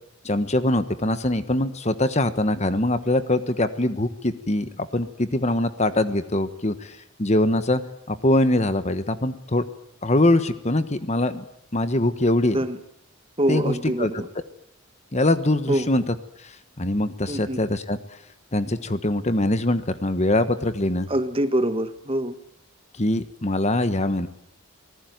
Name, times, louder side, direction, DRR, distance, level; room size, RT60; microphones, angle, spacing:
voice 1, 0.2-7.8 8.1-9.6 10.0-11.4 11.7-12.6 13.5-14.2 15.1-16.0 16.4-16.5 16.8-18.0 18.5-21.1 23.0-24.3, left 1 dB, 30° left, 11 dB, 1.3 m, -23 dB
voice 2, 13.4-14.3 15.7-15.9 17.3-17.6 21.1-22.3, right 1 dB, 25° right, 10 dB, 1.5 m, -24 dB
26.5 x 19.5 x 9.4 m, 0.74 s
head